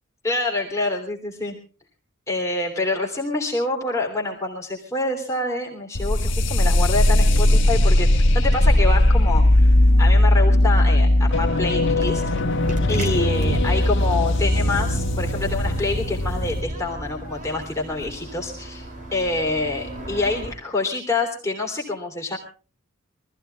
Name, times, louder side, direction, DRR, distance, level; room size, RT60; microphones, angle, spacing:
voice 1, 0.2-1.6 2.3-12.2 12.9-18.8 19.1-22.4, left 2 dB, 15° left, -1 dB, 3.1 m, -26 dB
sound 1, 5.9-16.6, left 1 dB, 60° left, 1.4 m, -18 dB
sound 2, 12.0-20.5, right 1 dB, 40° right, 2.9 m, -32 dB
23.5 x 15.0 x 3.4 m, 0.36 s
head